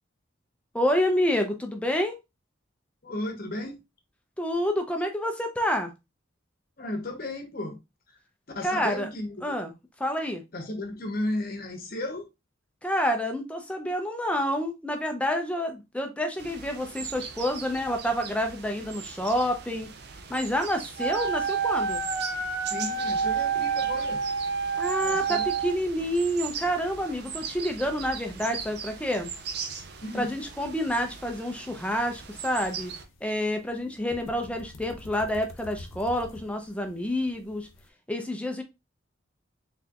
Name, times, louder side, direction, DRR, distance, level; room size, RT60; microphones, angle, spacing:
voice 1, 0.7-2.1 4.4-5.9 8.6-9.1 9.4-9.7 10.0-10.4 12.8-19.9 20.3-22.0 24.8-29.3 30.1-32.9 33.2-37.7 38.1-38.6, equal, 5° left, 0.6 m, -28 dB
voice 2, 3.0-3.8 6.8-7.8 8.1-8.2 8.5-9.5 10.5-12.3 22.7-24.2 25.0-25.5 30.0-30.3, left 1 dB, 45° left, 0.9 m, -34 dB
sound 1, 16.4-33.0, right 6 dB, 50° right, 0.5 m, -40 dB
Wind instrument woodwind instrument, 21.0-25.8, right 6 dB, 75° right, 0.9 m, -28 dB
sound 2, 31.9-37.9, left 1 dB, 85° left, 0.7 m, -48 dB
4.3 x 3.3 x 2.4 m
head